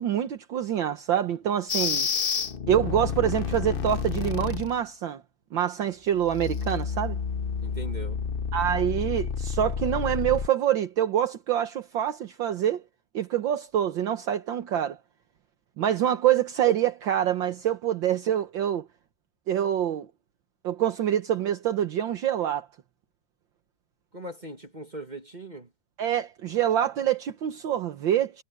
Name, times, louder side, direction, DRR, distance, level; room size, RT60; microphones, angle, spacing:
voice 1, 0.0-2.1 2.7-5.2 5.5-7.2 8.5-12.8 13.1-15.0 15.8-18.9 19.5-20.1 20.6-22.7 26.0-28.4, right 10 dB, 65° right, 1.8 m, -26 dB
sound 1, 1.7-4.8 6.2-10.5, left 6 dB, 75° left, 0.5 m, -30 dB
voice 2, 2.1-2.5 7.6-8.2 24.1-25.7, right 1 dB, 20° right, 2.0 m, -40 dB
omnidirectional pair, 2.2 m